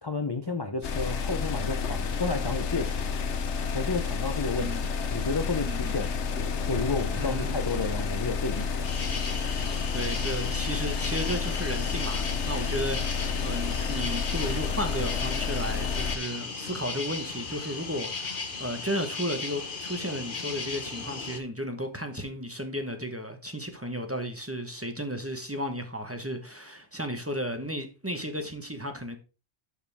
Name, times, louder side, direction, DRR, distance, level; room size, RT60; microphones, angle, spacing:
voice 1, 0.0-3.1 3.7-6.1 6.7-8.9, left 3 dB, 30° left, 0.6 m, -31 dB
sound 1, 0.8-16.2, left 5 dB, 75° left, 1.2 m, -30 dB
voice 2, 5.6-5.9 7.2-7.5 9.9-29.2, equal, 15° right, 1.0 m, -34 dB
sound 2, 8.8-21.4, left 4 dB, 50° left, 1.3 m, -36 dB
12.5 x 4.9 x 3.5 m
omnidirectional pair, 1.2 m